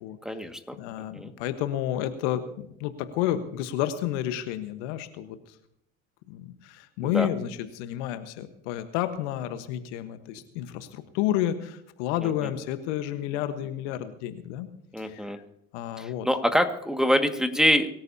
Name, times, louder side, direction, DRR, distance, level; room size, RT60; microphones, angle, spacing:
voice 1, 0.3-0.8 1.1-1.3 7.0-7.3 12.2-12.5 14.9-15.4 16.0-17.9, equal, ahead, 5 dB, 1.9 m, -25 dB
voice 2, 0.8-5.4 6.3-14.7 15.0-15.3 15.7-16.3, left 12 dB, 75° left, 10 dB, 1.3 m, -30 dB
23.5 x 13.5 x 2.8 m, 0.75 s
hypercardioid pair, 65°, 36 cm